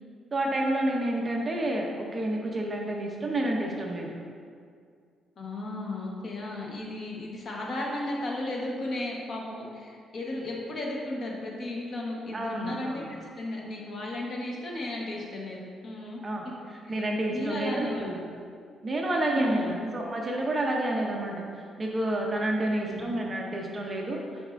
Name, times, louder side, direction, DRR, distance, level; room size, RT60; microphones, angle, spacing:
voice 1, 0.3-4.1 12.3-13.1 16.2-16.4 16.9-18.2 18.8-21.4 21.8-24.2, right 1 dB, 20° right, -1 dB, 0.6 m, -29 dB
voice 2, 5.4-16.2 16.8-17.0 17.3-18.1 19.3-19.8 22.9-23.1, left 1 dB, 40° left, -2 dB, 1.0 m, -35 dB
8.1 x 5.4 x 2.5 m, 2.2 s
cardioid pair, 170°, 0 cm